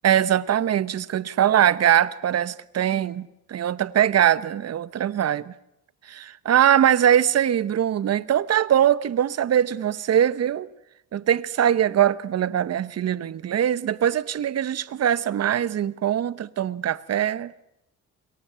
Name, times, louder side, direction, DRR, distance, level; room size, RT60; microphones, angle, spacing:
voice 1, 0.0-5.5 6.1-10.7 11.1-17.5, right 10 dB, 55° right, 1.1 m, -22 dB
28.5 x 22.5 x 7.0 m
cardioid pair, 90°, 30 cm